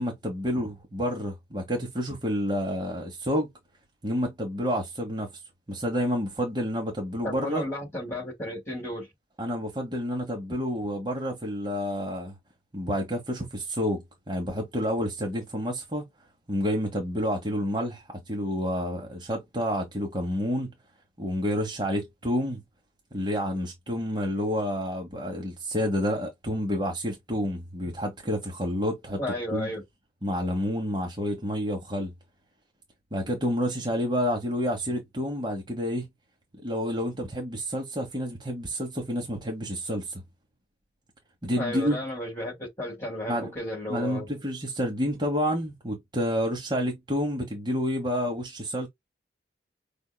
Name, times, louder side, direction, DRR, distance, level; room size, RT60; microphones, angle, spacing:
voice 1, 0.0-3.5 4.0-5.3 5.7-7.6 9.4-12.3 12.7-16.1 16.5-20.7 21.2-22.6 23.1-29.2 29.5-29.7 30.2-32.1 33.1-36.1 36.6-40.2 41.4-42.0 43.3-43.5 43.9-48.9, equal, 25° right, 1.2 m, -29 dB
voice 2, 7.2-9.1 29.2-29.8 41.6-44.3, left 1 dB, 15° left, 2.8 m, -33 dB
5.3 x 3.6 x 2.2 m
head